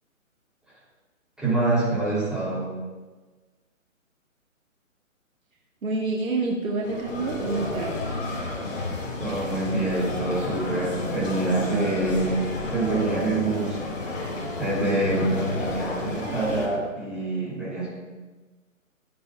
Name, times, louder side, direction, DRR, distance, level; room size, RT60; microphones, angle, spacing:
voice 1, 1.4-2.7 9.2-12.4 12.7-13.8 14.6-17.9, right 2 dB, ahead, -10 dB, 3.4 m, -26 dB
voice 2, 5.8-7.9, right 3 dB, 80° right, -2 dB, 1.9 m, -27 dB
sound 1, 6.8-16.7, left 2 dB, 65° left, 2.9 m, -31 dB
14.5 x 9.4 x 2.5 m, 1.3 s
hypercardioid pair, 155°, 41 cm